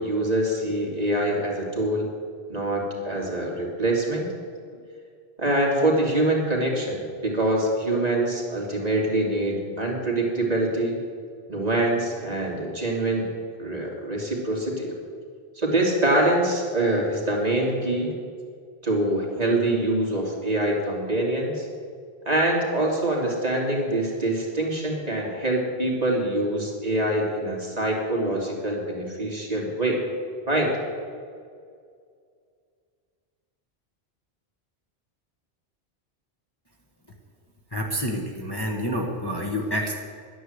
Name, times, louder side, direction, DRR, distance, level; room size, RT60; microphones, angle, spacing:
voice 1, 0.0-2.1 2.5-4.3 5.4-11.0 11.5-13.3 13.6-14.9 15.5-18.1 18.8-21.7 22.2-30.0 30.5-30.7, right 1 dB, 40° right, -2 dB, 3.0 m, -24 dB
voice 2, 37.7-40.0, equal, 25° left, 0 dB, 1.3 m, -28 dB
11.5 x 10.0 x 8.0 m, 2.2 s
omnidirectional pair, 1.1 m